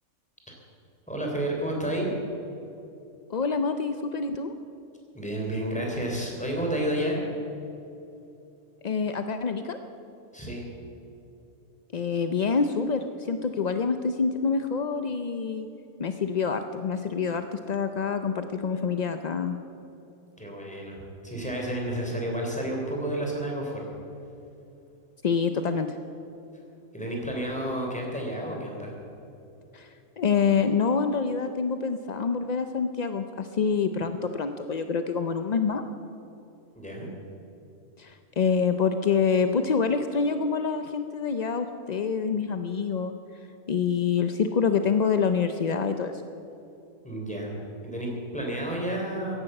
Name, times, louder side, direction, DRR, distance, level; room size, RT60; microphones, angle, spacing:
voice 1, 1.1-2.1 5.1-7.2 10.3-10.6 20.4-23.9 26.9-28.9 36.7-37.1 47.0-47.5 47.8-49.4, right 1 dB, 5° left, -1 dB, 3.4 m, -31 dB
voice 2, 3.3-4.5 8.8-9.8 11.9-15.7 16.0-19.6 25.2-25.9 29.7-29.9 30.2-35.8 38.0-43.1 43.7-46.2, left 5 dB, 50° left, 8 dB, 0.5 m, -26 dB
16.0 x 11.0 x 7.8 m, 2.8 s
omnidirectional pair, 1.4 m